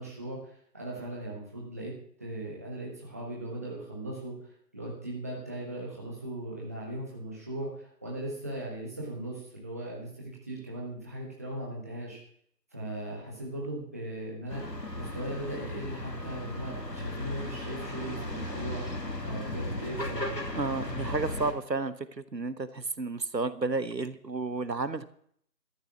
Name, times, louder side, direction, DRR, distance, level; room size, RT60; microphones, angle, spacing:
voice 1, 0.0-1.9 2.2-4.4 4.7-12.2 12.7-14.6 14.9-18.8 19.2-20.3, right 1 dB, 10° right, -4 dB, 1.4 m, -38 dB
sound 1, 14.5-21.5, left 1 dB, 80° left, 2.8 m, -36 dB
voice 2, 20.5-25.0, right 3 dB, 85° right, 14 dB, 1.3 m, -32 dB
13.0 x 9.8 x 7.1 m, 0.63 s
figure-of-eight pair, 160°, 49 cm